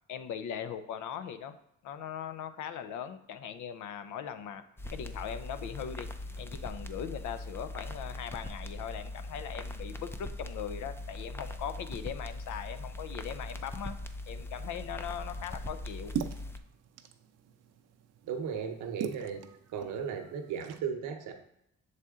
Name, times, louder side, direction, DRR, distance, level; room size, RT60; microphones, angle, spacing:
voice 1, 0.1-1.5 1.8-4.6 4.9-6.1 6.4-14.0 14.3-16.1, left 8 dB, 80° left, 10 dB, 0.6 m, -40 dB
sound 1, 4.8-16.6, left 2 dB, 10° left, 0.4 m, -41 dB
sound 2, 15.7-20.8, right 8 dB, 60° right, 0.5 m, -42 dB
voice 2, 18.2-19.4 19.7-21.3, right 7 dB, 90° right, 5 dB, 0.9 m, -36 dB
6.4 x 4.1 x 3.6 m, 0.78 s
cardioid pair, 90°, 30 cm